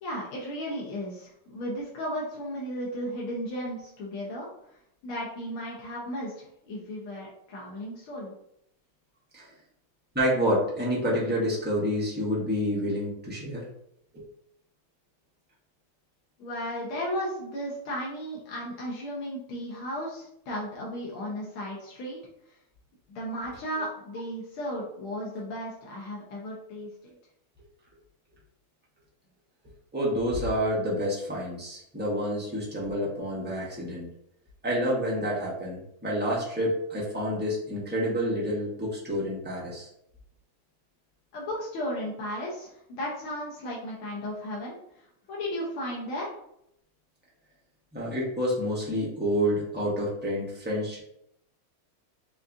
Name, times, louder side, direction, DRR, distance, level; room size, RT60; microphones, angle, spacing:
voice 1, 0.0-4.5 5.0-8.3 16.4-22.2 23.1-26.9 41.3-46.3, equal, 80° left, -4 dB, 1.7 m, -35 dB
voice 2, 10.1-13.7 14.1-14.2 29.9-34.1 34.6-39.9 47.9-51.0, equal, 10° right, -5 dB, 0.4 m, -28 dB
6.3 x 2.4 x 2.6 m, 0.75 s
omnidirectional pair, 2.3 m